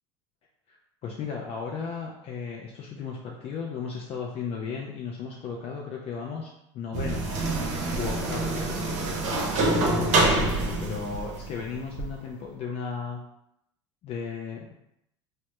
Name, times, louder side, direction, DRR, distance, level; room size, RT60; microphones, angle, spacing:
voice 1, 1.0-7.4 8.0-8.6 9.6-13.2 14.0-14.7, left 5 dB, 40° left, -2 dB, 0.4 m, -35 dB
sound 1, 6.9-12.1, right 2 dB, 50° right, 0.6 m, -26 dB
2.1 x 2.1 x 2.8 m, 0.80 s
hypercardioid pair, 85°, 15 cm